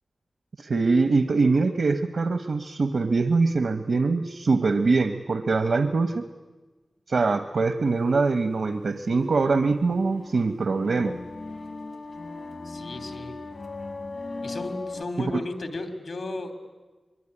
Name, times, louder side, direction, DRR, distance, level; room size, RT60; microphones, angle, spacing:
voice 1, 0.6-6.3 7.1-11.1 15.3-15.4, right 4 dB, 80° right, 9 dB, 1.0 m, -23 dB
sound 1, 9.2-15.0, left 3 dB, 60° left, 1.1 m, -38 dB
voice 2, 12.6-13.3 14.4-16.5, left 2 dB, 85° left, 7 dB, 3.2 m, -34 dB
23.5 x 23.0 x 9.9 m, 1.3 s
wide cardioid pair, 85°, 0 cm